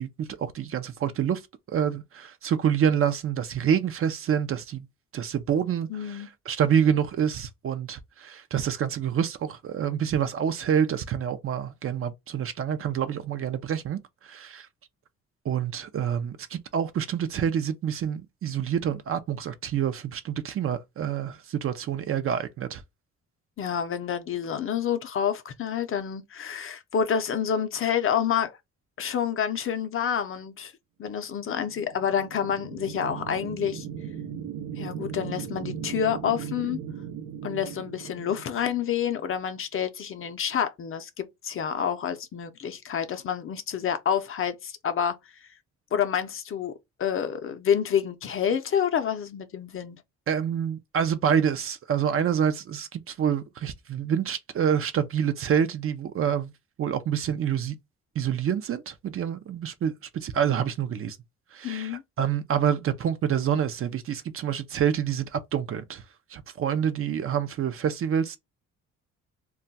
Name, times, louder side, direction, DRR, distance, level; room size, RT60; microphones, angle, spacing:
voice 1, 0.0-1.4 1.7-4.9 5.1-14.7 15.4-22.8 50.3-56.5 56.8-57.7 58.2-61.2 61.5-66.0 66.3-68.4, right 8 dB, 45° right, 0.5 m, -27 dB
voice 2, 5.9-6.3 23.6-28.6 29.0-30.7 31.0-33.9 34.8-36.8 37.4-45.1 45.9-46.7 47.0-50.0 61.6-62.0, left 8 dB, 45° left, 0.6 m, -28 dB
sound 1, 31.5-39.2, right 8 dB, 85° right, 0.7 m, -38 dB
2.3 x 2.1 x 3.9 m
cardioid pair, 90°, 30 cm